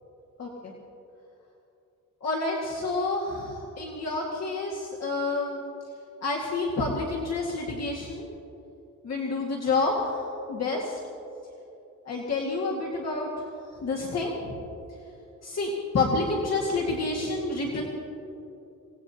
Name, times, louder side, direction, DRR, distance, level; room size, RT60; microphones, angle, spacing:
voice 1, 0.4-0.7 2.2-5.6 6.2-8.3 9.0-11.0 12.1-13.3 13.8-14.6 15.4-17.8, left 3 dB, 55° left, -3 dB, 2.0 m, -29 dB
25.5 x 18.0 x 2.9 m, 2.9 s
wide cardioid pair, 130°, 31 cm